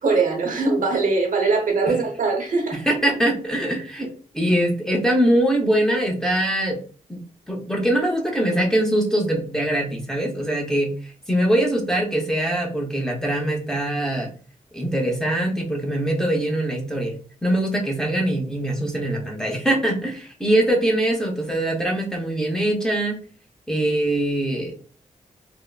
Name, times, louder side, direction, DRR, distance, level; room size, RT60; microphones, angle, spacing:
voice 1, 0.0-2.8, right 4 dB, 85° right, 2 dB, 0.8 m, -21 dB
voice 2, 2.7-4.1 4.3-6.8 7.1-7.2 7.5-11.0 11.3-14.3 14.7-17.1 17.4-23.2 23.7-24.7, right 1 dB, 5° left, -1 dB, 0.7 m, -22 dB
3.6 x 2.0 x 2.2 m, 0.40 s
wide cardioid pair, 110°, 13 cm